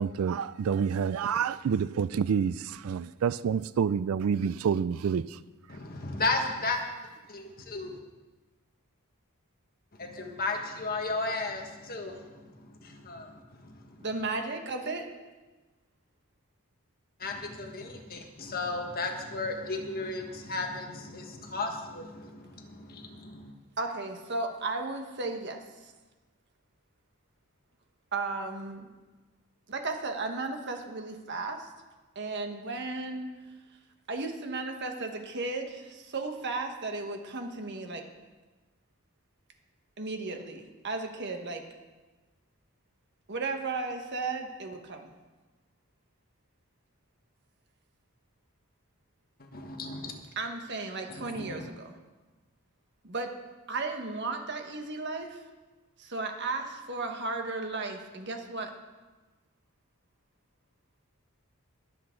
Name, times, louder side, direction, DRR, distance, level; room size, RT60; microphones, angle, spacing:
voice 1, 0.0-5.3, right 7 dB, 70° right, 0.3 m, -28 dB
voice 2, 5.7-6.8 7.3-8.0 10.0-14.0 17.2-23.6 49.4-50.1 51.1-51.7, left 3 dB, 45° left, 1.5 m, -35 dB
voice 3, 14.0-15.1 23.8-25.6 28.1-28.9 29.7-31.7 32.1-33.3 34.1-38.0 40.0-41.6 43.3-45.1 50.3-51.9 53.0-53.3 53.7-55.4 56.0-58.7, right 3 dB, 55° right, 1.4 m, -34 dB
22.5 x 7.8 x 3.9 m
head